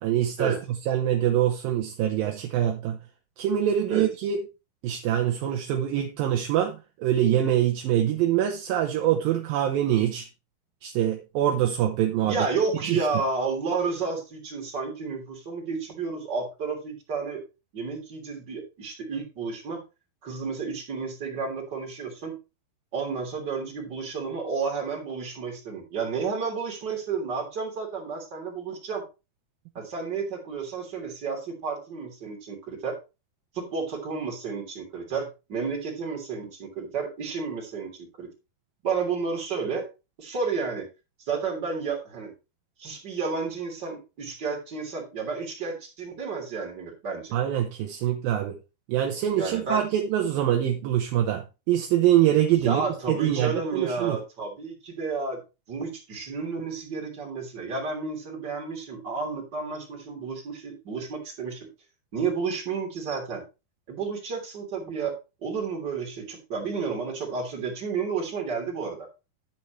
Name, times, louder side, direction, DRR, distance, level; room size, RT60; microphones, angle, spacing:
voice 1, 0.0-0.5 0.9-3.0 3.4-4.4 4.8-10.3 10.8-12.5 12.8-13.1 47.3-48.6 48.9-54.2, right 11 dB, 75° right, 2.5 m, -24 dB
voice 2, 12.3-17.4 17.7-19.8 20.2-22.3 22.9-29.0 29.7-32.9 33.5-38.3 38.8-39.9 40.2-40.9 41.2-42.3 42.8-47.4 49.4-49.8 52.5-55.4 55.7-61.7 62.1-63.4 63.9-65.1 65.4-69.1, right 5 dB, 30° right, 3.5 m, -31 dB
10.5 x 8.7 x 3.2 m
omnidirectional pair, 4.5 m